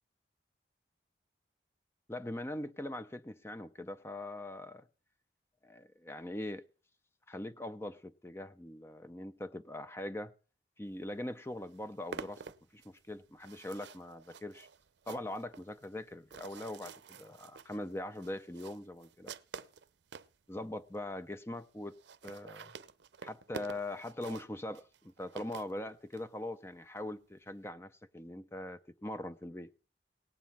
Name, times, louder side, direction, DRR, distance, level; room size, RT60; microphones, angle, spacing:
voice 1, 2.1-4.8 5.6-6.6 7.3-10.3 10.8-12.4 12.7-14.7 15.1-19.7 20.5-22.0 22.2-22.7 23.2-29.7, left 1 dB, 15° left, 0.5 m, -42 dB
sound 1, 11.1-11.2 11.5-20.3 20.9-21.0 21.2-21.3 21.5-21.6 21.9-26.3, right 5 dB, 85° right, 0.5 m, -49 dB
18.0 x 9.4 x 4.2 m
head